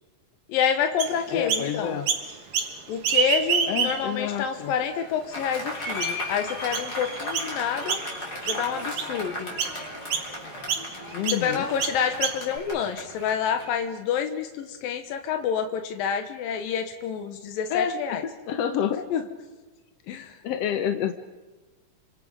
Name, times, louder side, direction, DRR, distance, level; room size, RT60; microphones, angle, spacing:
voice 1, 0.5-2.0 2.9-8.0 8.4-9.6 11.3-18.2 19.1-19.2 20.1-20.3, left 8 dB, 90° left, 7 dB, 2.9 m, -28 dB
Chirp tweet, 1.0-1.7 2.1-2.7 3.0-4.2 4.7-4.8 5.5-5.6 6.0-6.3 6.7-6.9 7.3-7.5 7.9-8.2 8.5-9.1 9.6-9.8 10.1-10.3 10.7-10.9 11.3-11.4 11.8-12.6, right 7 dB, 85° right, 3.7 m, -27 dB
voice 2, 1.3-2.1 3.7-4.7 11.1-11.7 17.7-19.0 20.4-21.1, left 8 dB, 70° left, 8 dB, 1.5 m, -28 dB
Applause, 5.3-13.7, left 1 dB, 25° left, 4.5 m, -36 dB
28.5 x 26.0 x 5.2 m, 1.3 s
omnidirectional pair, 4.0 m